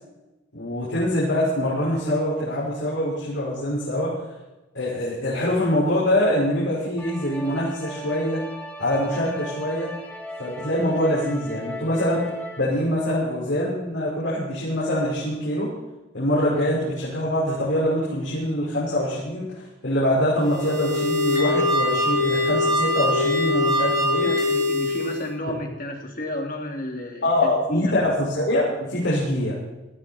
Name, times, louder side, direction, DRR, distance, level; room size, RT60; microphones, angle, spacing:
voice 1, 0.5-4.1 4.7-8.4 8.8-9.9 10.4-12.2 12.6-15.7 16.1-19.5 19.8-24.3 27.2-29.5, left 1 dB, 75° left, -7 dB, 5.6 m, -24 dB
sound 1, 7.0-12.6, equal, 10° left, 2.1 m, -37 dB
sound 2, 20.4-25.3, left 2 dB, 20° right, 3.1 m, -23 dB
voice 2, 24.2-27.9, left 1 dB, 45° left, 2 dB, 3.1 m, -31 dB
18.5 x 13.5 x 4.5 m, 1.0 s
head